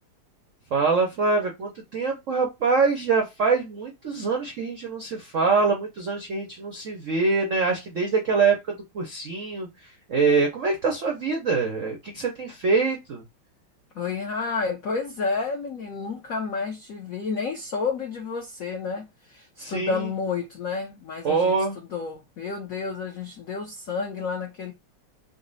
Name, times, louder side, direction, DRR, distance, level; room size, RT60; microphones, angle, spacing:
voice 1, 0.7-13.2 19.6-20.1 21.2-21.8, right 4 dB, 75° right, 0.7 m, -24 dB
voice 2, 13.9-24.7, left 4 dB, 75° left, 0.7 m, -30 dB
4.1 x 2.0 x 3.8 m
omnidirectional pair, 2.4 m